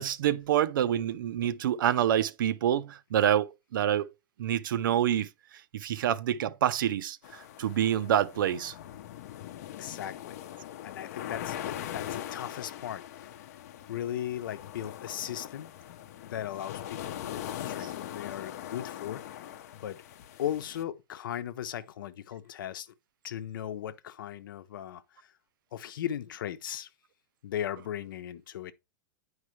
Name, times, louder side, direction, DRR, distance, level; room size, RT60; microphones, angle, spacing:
voice 1, 0.0-4.1 4.4-5.3 5.7-8.7, right 10 dB, 80° right, 0.7 m, -27 dB
sound 1, 7.2-20.8, left 11 dB, 50° left, 0.7 m, -41 dB
voice 2, 9.8-10.4 10.8-13.3 13.9-15.7 16.2-19.2 19.7-20.0 20.4-22.9 23.2-25.3 25.7-26.9 27.4-28.7, left 10 dB, 80° left, 0.9 m, -37 dB
9.6 x 4.8 x 3.2 m
supercardioid pair, 175°, 11 cm